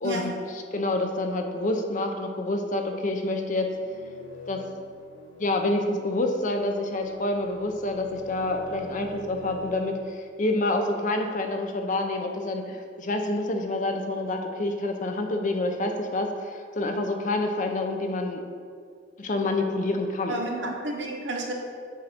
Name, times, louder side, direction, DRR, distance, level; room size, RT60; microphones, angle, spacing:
voice 1, 0.0-0.3 0.7-3.7 4.5-4.6 5.4-18.4 19.2-20.4, left 2 dB, 45° left, 4 dB, 0.6 m, -27 dB
sound 1, 3.6-9.8, left 1 dB, 75° left, 1.2 m, -45 dB
voice 2, 20.3-21.5, right 2 dB, 75° right, 0 dB, 0.9 m, -31 dB
7.3 x 2.6 x 5.8 m, 2.1 s
head